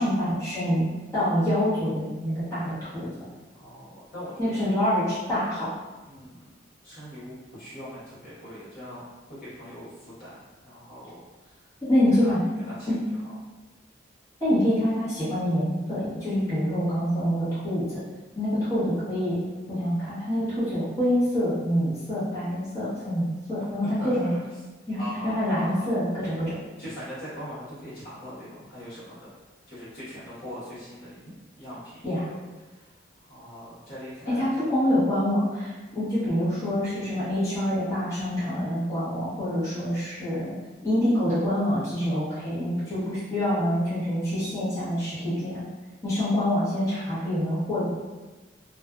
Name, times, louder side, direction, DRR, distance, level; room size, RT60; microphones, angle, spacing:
voice 1, 0.0-3.1 4.4-5.7 11.9-12.4 12.9-13.0 14.4-17.8 18.4-19.4 19.7-24.3 24.9-26.6 32.0-32.2 34.3-40.6 40.8-45.6 46.0-47.8, equal, 15° left, -14 dB, 1.0 m, -26 dB
voice 2, 3.5-4.6 6.1-6.5 6.8-9.0 9.3-10.4 10.6-11.7 12.1-13.4 23.8-24.4 25.0-25.9 26.8-29.3 29.7-31.3 31.6-33.0 33.3-34.5, equal, 50° left, -11 dB, 1.0 m, -41 dB
2.5 x 2.3 x 2.4 m, 1.2 s
head